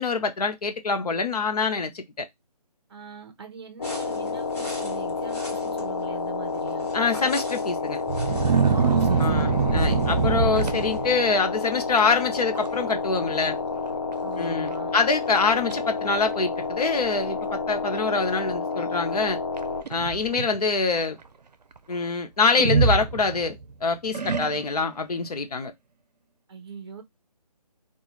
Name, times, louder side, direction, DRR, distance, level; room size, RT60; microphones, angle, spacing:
voice 1, 0.0-2.2 6.9-8.0 9.2-13.6 14.4-19.4 19.9-21.2 21.9-25.7, left 4 dB, 70° left, 0.7 m, -25 dB
voice 2, 2.9-6.9 8.5-9.5 14.2-15.0 26.5-27.0, right 5 dB, 40° right, 0.7 m, -42 dB
sound 1, 3.8-19.8, left 4 dB, 35° left, 0.4 m, -30 dB
sound 2, 3.8-11.0, left 1 dB, 20° left, 1.1 m, -44 dB
sound 3, 8.1-11.4 12.0-12.2 12.6-13.0 13.2-13.3 14.1-14.2 14.7-14.8 15.4-15.8 16.6-16.7 19.6-20.6 22.6-23.6 24.1-24.9, right 5 dB, 90° right, 0.5 m, -24 dB
2.4 x 2.3 x 3.0 m
figure-of-eight pair, 160°, 20 cm